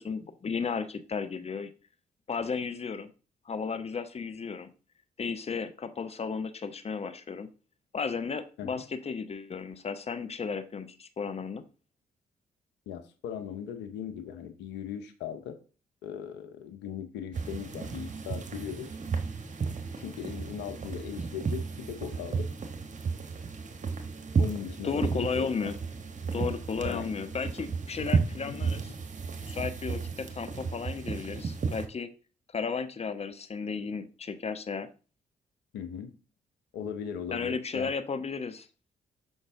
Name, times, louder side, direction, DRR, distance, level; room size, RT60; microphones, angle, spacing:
voice 1, 0.0-1.7 2.3-3.1 3.5-4.7 5.2-7.5 7.9-11.6 24.8-25.8 26.3-28.8 29.4-32.1 32.5-34.9 37.3-38.7, left 5 dB, 35° left, 11 dB, 0.8 m, -34 dB
voice 2, 12.9-15.6 16.0-18.9 20.0-22.5 24.4-25.7 26.8-27.2 28.5-28.7 35.7-36.1 36.7-37.9, left 8 dB, 75° left, 9 dB, 0.8 m, -39 dB
sound 1, 17.3-31.9, right 5 dB, 45° right, 1.2 m, -33 dB
6.2 x 5.3 x 3.5 m, 0.36 s
hypercardioid pair, 40°, 18 cm